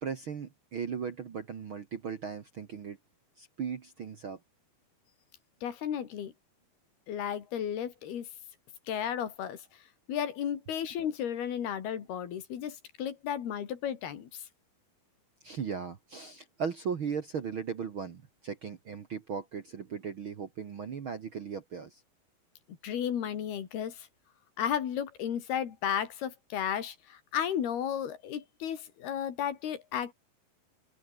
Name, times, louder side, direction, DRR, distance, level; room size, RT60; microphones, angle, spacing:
voice 1, 0.0-3.0 3.4-4.4 15.4-22.0, right 6 dB, 50° right, 1.6 m, -37 dB
voice 2, 5.6-6.3 7.1-8.3 8.9-9.6 10.1-14.5 22.7-24.1 24.6-30.1, left 9 dB, 80° left, 4.6 m, -34 dB
open air
omnidirectional pair, 4.4 m